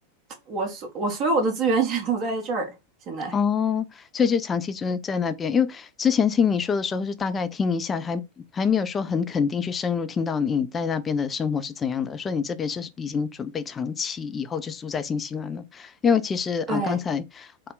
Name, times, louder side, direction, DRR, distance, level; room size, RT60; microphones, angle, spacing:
voice 1, 0.5-2.7 3.1-3.3 16.7-17.0, right 3 dB, 35° right, 1.2 m, -25 dB
voice 2, 3.3-3.9 4.1-8.2 8.5-17.7, left 6 dB, 20° left, 0.4 m, -26 dB
3.5 x 2.1 x 3.8 m
figure-of-eight pair, 90°, 0 cm